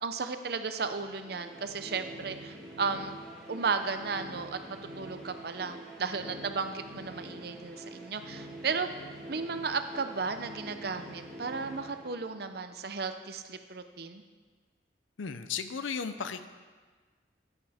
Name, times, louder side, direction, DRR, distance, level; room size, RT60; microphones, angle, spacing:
voice 1, 0.0-3.1 3.5-4.6 5.0-8.9 9.3-14.2, right 4 dB, 55° right, 9 dB, 0.6 m, -34 dB
sound 1, 0.8-12.7, right 1 dB, 5° left, 2.7 m, -46 dB
voice 2, 15.2-16.5, left 6 dB, 85° left, 11 dB, 0.6 m, -35 dB
10.5 x 9.8 x 3.5 m, 1.4 s
head